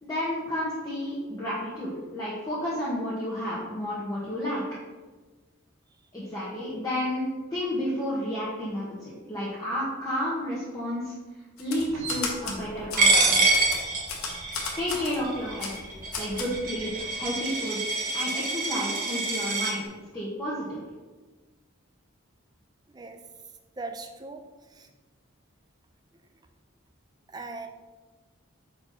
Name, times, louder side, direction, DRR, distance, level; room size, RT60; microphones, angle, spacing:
voice 1, 0.0-4.6 6.1-11.1 11.6-13.6 14.8-15.7 16.2-17.8 18.1-19.8 20.1-20.8, left 1 dB, 15° left, -9 dB, 1.1 m, -31 dB
Typewriter, 11.6-12.6 12.9-13.0 13.5-15.2 15.6-15.8 16.1-16.5, left 5 dB, 80° left, 1.1 m, -34 dB
sound 1, 11.8-17.3, right 3 dB, 80° right, 1.3 m, -44 dB
Coin (dropping), 13.0-19.7, right 3 dB, 40° right, 1.0 m, -26 dB
voice 2, 23.8-24.4 24.7-24.9 27.3-27.7, right 3 dB, 20° right, 5 dB, 0.4 m, -39 dB
4.4 x 4.3 x 5.6 m, 1.3 s
head